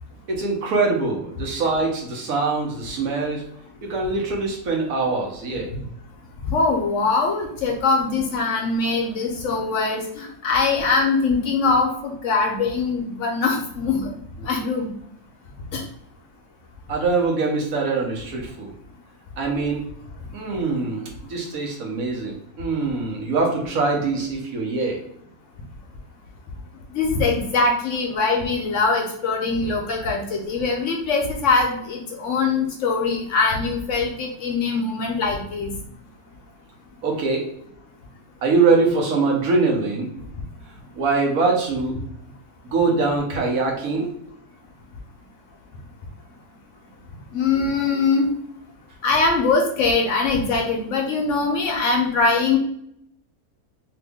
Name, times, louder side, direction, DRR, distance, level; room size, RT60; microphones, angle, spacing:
voice 1, 0.3-3.4 3.8-5.7 16.9-18.7 19.4-19.9 20.3-25.0 37.0-37.5 38.4-40.1 41.0-42.0 42.7-44.1, right 3 dB, 70° right, 0 dB, 1.2 m, -23 dB
voice 2, 6.5-14.1 14.4-14.9 15.7-15.8 26.9-35.7 47.3-48.3 49.0-52.6, left 4 dB, 65° left, 1 dB, 0.9 m, -22 dB
2.9 x 2.5 x 3.4 m, 0.73 s
omnidirectional pair, 1.5 m